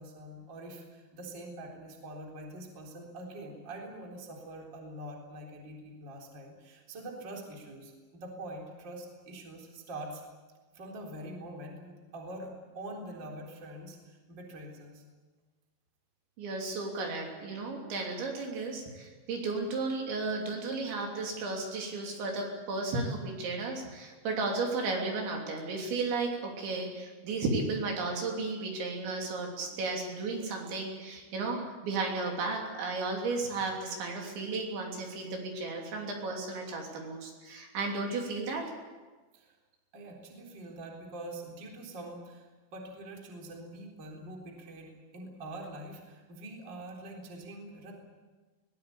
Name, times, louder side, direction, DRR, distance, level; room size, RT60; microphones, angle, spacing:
voice 1, 0.0-10.2 10.7-15.0 39.3-39.5 39.9-47.9, right 1 dB, 25° right, 0 dB, 3.8 m, -44 dB
voice 2, 16.4-38.6, right 3 dB, 65° right, 0 dB, 5.3 m, -34 dB
22.0 x 19.0 x 8.5 m, 1.3 s
omnidirectional pair, 5.8 m